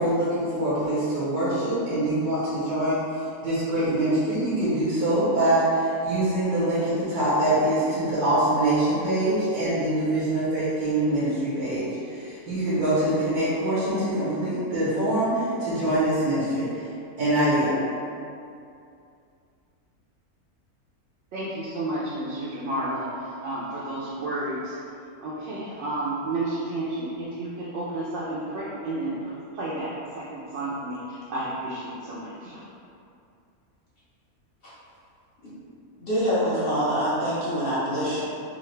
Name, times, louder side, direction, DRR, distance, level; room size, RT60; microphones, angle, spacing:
voice 1, 0.0-3.0 3.4-16.7 17.2-17.8, right 1 dB, 85° right, -10 dB, 1.5 m, -24 dB
voice 2, 21.3-24.8 25.2-29.3 29.5-29.9 30.1-32.6, right 1 dB, 65° right, -8 dB, 0.7 m, -31 dB
voice 3, 36.0-38.2, equal, 45° left, -11 dB, 1.0 m, -25 dB
3.7 x 2.4 x 3.1 m, 2.5 s
omnidirectional pair, 1.6 m